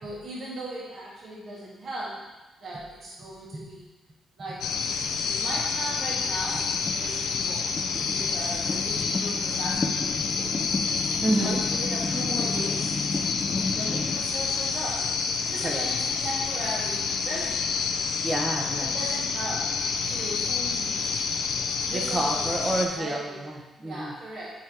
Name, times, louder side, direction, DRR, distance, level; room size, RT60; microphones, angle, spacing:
voice 1, 0.0-2.1 2.6-3.9 4.4-4.6 5.3-10.5 11.4-12.9 13.8-15.0 15.4-17.7 18.8-19.6 20.1-21.1 21.9-23.4 23.8-24.6, right 1 dB, 60° right, -6 dB, 1.9 m, -37 dB
sound 1, 4.6-22.9, left 5 dB, 80° left, 0.5 m, -28 dB
sound 2, 6.4-14.2, left 3 dB, 35° left, 0.5 m, -33 dB
voice 2, 11.2-11.6 15.6-15.9 18.2-19.0 21.9-24.1, right 2 dB, 30° right, 1 dB, 1.1 m, -29 dB
7.4 x 4.7 x 3.0 m, 1.1 s
cardioid pair, 70°, 0 cm